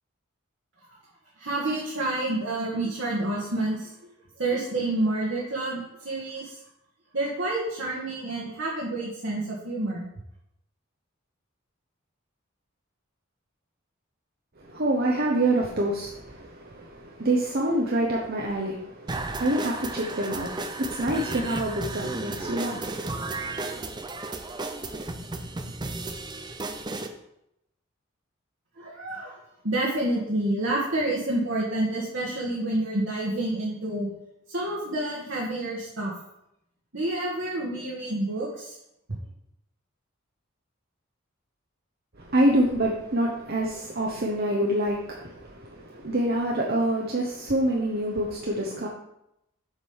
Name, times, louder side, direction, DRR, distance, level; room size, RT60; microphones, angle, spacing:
voice 1, 1.4-3.9 4.4-6.6 7.1-10.1 28.8-29.4 29.6-34.1 34.5-36.1 36.9-38.7, right 2 dB, 65° right, -5 dB, 1.6 m, -28 dB
voice 2, 14.6-23.8 42.2-48.9, right 1 dB, 50° right, -1 dB, 1.0 m, -27 dB
sound 1, 19.1-27.1, right 2 dB, 20° right, 0.5 m, -34 dB
7.3 x 5.2 x 5.5 m, 0.83 s
head